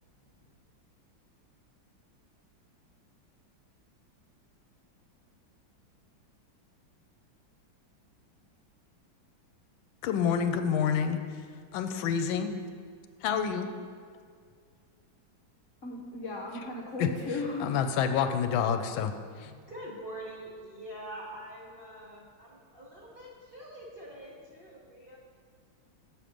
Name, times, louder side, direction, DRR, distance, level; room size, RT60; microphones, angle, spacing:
voice 1, 10.0-11.2 11.7-12.5 13.2-13.7 17.0-17.1 17.6-19.1 19.4-19.5, left 7 dB, 80° left, 8 dB, 1.3 m, -28 dB
voice 2, 15.8-17.8, left 2 dB, 55° left, -3 dB, 0.9 m, -36 dB
voice 3, 19.4-25.2, right 1 dB, 35° right, -5 dB, 1.0 m, -45 dB
7.3 x 5.1 x 6.3 m, 2.1 s
omnidirectional pair, 2.2 m